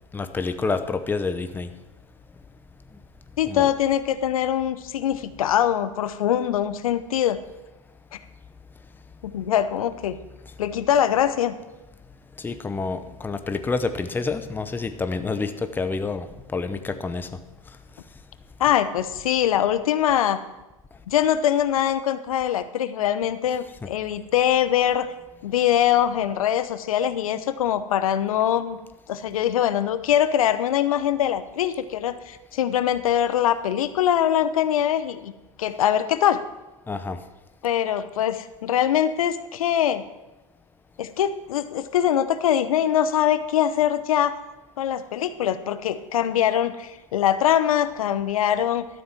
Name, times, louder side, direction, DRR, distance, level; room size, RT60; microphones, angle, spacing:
voice 1, 0.1-1.7 3.5-3.7 10.4-10.5 12.4-17.3 23.8-23.9 36.9-37.2, left 4 dB, 10° left, 9 dB, 0.8 m, -28 dB
voice 2, 3.4-7.4 8.1-8.2 9.2-10.2 10.6-11.6 18.6-20.4 21.1-25.1 25.4-28.8 29.1-35.3 35.6-36.4 37.6-40.0 41.0-44.4 44.8-48.9, left 10 dB, 75° left, 12 dB, 0.8 m, -23 dB
13.0 x 7.5 x 5.9 m, 1.0 s
hypercardioid pair, 105°, 18 cm